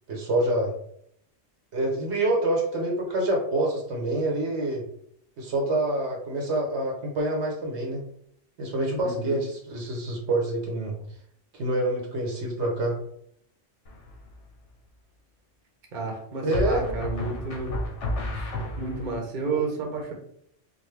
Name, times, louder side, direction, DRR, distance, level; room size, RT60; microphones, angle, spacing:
voice 1, 0.1-0.7 1.7-4.8 5.4-8.0 8.6-10.9 11.5-13.0 16.4-16.8 19.5-19.6, right 1 dB, 65° right, 0 dB, 1.2 m, -26 dB
voice 2, 9.0-9.4 15.9-17.7 18.3-18.5 18.8-20.1, right 3 dB, 45° right, 1 dB, 1.0 m, -31 dB
sound 1, 13.9-14.3 16.5-19.2, left 1 dB, 75° left, 1.3 m, -31 dB
5.2 x 2.2 x 3.2 m, 0.68 s
omnidirectional pair, 1.2 m